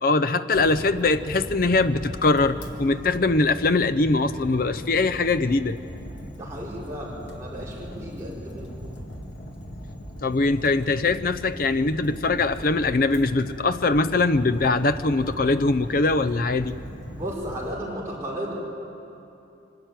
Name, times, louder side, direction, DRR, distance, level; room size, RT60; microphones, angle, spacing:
voice 1, 0.0-5.8 10.2-16.7, left 3 dB, 50° left, 13 dB, 0.6 m, -22 dB
Fire, 0.5-17.7, equal, 70° left, 2.1 m, -39 dB
voice 2, 6.3-8.7 17.1-18.5, equal, 15° right, -7 dB, 5.1 m, -34 dB
24.0 x 12.5 x 9.2 m, 2.8 s
head